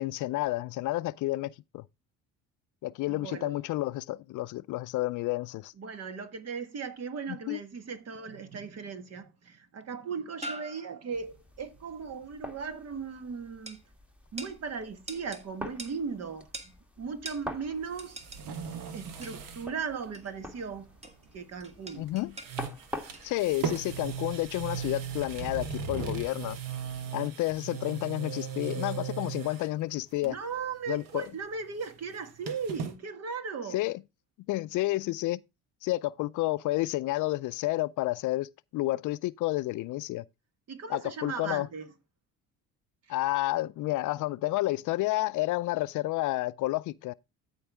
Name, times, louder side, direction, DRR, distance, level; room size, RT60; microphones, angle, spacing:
voice 1, 0.0-1.8 2.8-5.7 7.3-7.6 22.0-22.3 23.2-26.6 27.1-30.4 30.9-31.3 33.7-34.0 34.5-35.4 35.8-40.2 40.9-41.7 43.1-47.1, left 17 dB, 65° left, 0.5 m, -30 dB
voice 2, 3.1-3.5 5.8-13.8 14.3-18.2 18.9-20.9 21.3-22.1 30.2-33.8 40.7-41.9, right 5 dB, 50° right, 1.5 m, -37 dB
sound 1, 8.2-8.7 9.8-9.9 10.4-11.3 13.7-13.8 14.4-14.6 15.1-15.5 15.8-16.0 16.5-16.7 17.3-17.5 18.0-18.5 19.2-19.5 20.1-20.4 21.0-21.3 21.6-22.6 23.1-24.0 24.4-24.5, right 1 dB, 20° right, 1.7 m, -44 dB
sound 2, 11.1-27.1, left 1 dB, 5° right, 1.3 m, -47 dB
sound 3, 17.7-19.7 20.0-20.1 21.8-22.1 22.4-29.7 30.2-30.6 30.8-33.0, right 6 dB, 75° right, 1.5 m, -38 dB
13.5 x 4.7 x 3.4 m
cardioid pair, 95°, 33 cm